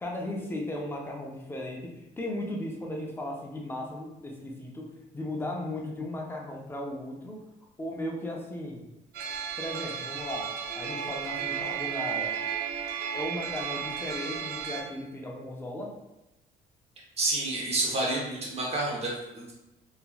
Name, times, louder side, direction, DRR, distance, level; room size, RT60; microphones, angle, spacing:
voice 1, 0.0-4.9 5.1-7.4 7.8-8.8 9.6-12.3 13.1-15.9, left 1 dB, 15° left, -1 dB, 0.5 m, -36 dB
sound 1, 9.1-14.8, right 8 dB, 70° right, 0.5 m, -34 dB
voice 2, 17.2-19.6, right 2 dB, 35° right, -3 dB, 0.9 m, -29 dB
2.9 x 2.4 x 2.3 m, 0.92 s
cardioid pair, 110°, 17 cm